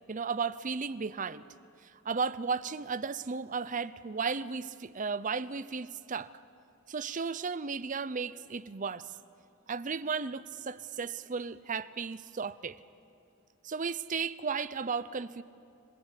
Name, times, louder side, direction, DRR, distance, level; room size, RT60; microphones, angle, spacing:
voice 1, 0.1-1.4 1.8-6.3 6.9-9.1 9.7-12.8 13.6-15.4, right 5 dB, 35° right, 15 dB, 0.6 m, -34 dB
26.5 x 18.5 x 8.5 m, 2.6 s
head